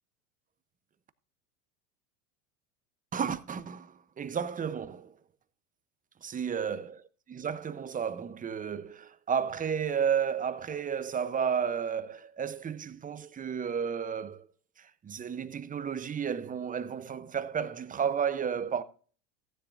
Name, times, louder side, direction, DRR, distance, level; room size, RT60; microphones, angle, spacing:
voice 1, 3.1-5.1 6.2-14.5 14.8-18.8, right 7 dB, 20° right, 0.7 m, -32 dB
15.5 x 9.8 x 2.6 m
supercardioid pair, 100°, 41 cm